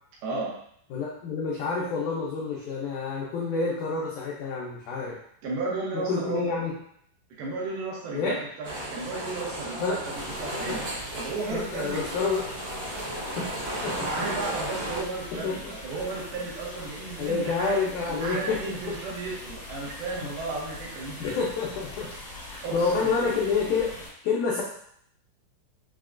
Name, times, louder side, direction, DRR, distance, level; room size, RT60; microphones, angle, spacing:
voice 1, 0.2-0.5 5.4-6.4 7.4-10.1 10.4-10.9 11.2-12.0 14.0-17.8 18.1-21.2 22.6-23.4, right 3 dB, 85° right, -5 dB, 2.9 m, -34 dB
voice 2, 0.9-5.2 5.9-6.7 8.1-8.4 9.8-10.0 10.7-10.8 11.5-12.5 13.2-13.5 13.8-14.3 15.3-15.8 17.2-19.0 21.2-22.1 22.5-24.0 24.2-24.6, left 4 dB, 85° left, -4 dB, 1.7 m, -28 dB
sound 1, 8.6-15.0, right 1 dB, 60° right, 2.0 m, -34 dB
sound 2, 10.1-24.1, left 2 dB, 65° left, 1.2 m, -42 dB
6.5 x 2.2 x 2.5 m, 0.67 s
omnidirectional pair, 4.3 m